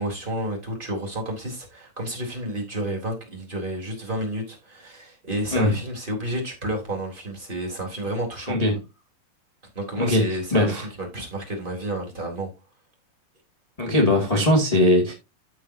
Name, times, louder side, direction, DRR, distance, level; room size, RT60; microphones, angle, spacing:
voice 1, 0.0-8.6 9.8-12.5, right 1 dB, 15° right, 3.6 m, -30 dB
voice 2, 10.5-10.9 13.8-15.1, left 1 dB, 15° left, 1.8 m, -20 dB
14.5 x 6.4 x 2.8 m
omnidirectional pair, 3.8 m